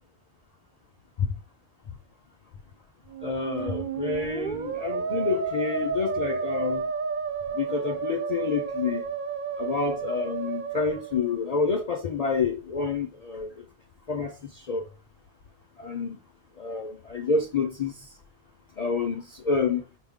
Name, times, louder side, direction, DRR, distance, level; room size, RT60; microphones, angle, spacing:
Musical instrument, 3.1-11.8, right 6 dB, 60° right, 0.6 m, -31 dB
voice 1, 3.2-6.8 7.5-9.0 9.6-13.6 14.1-14.9 15.8-16.2 16.6-18.1 18.8-19.8, left 5 dB, 50° left, 0.5 m, -28 dB
5.1 x 2.0 x 3.5 m
omnidirectional pair, 1.1 m